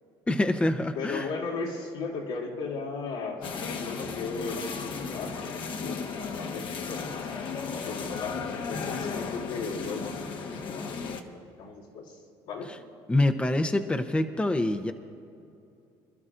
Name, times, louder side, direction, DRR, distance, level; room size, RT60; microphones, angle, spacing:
voice 1, 0.3-1.3 12.7-12.8 13.1-14.9, left 1 dB, 10° left, 7 dB, 0.7 m, -25 dB
voice 2, 0.9-7.4 7.7-11.2 11.6-12.2 12.4-12.7, left 4 dB, 80° left, -4 dB, 3.1 m, -36 dB
sound 1, 3.4-11.2, left 5 dB, 55° left, 1.2 m, -35 dB
26.5 x 12.5 x 2.6 m, 2.6 s
supercardioid pair, 100°, 10 cm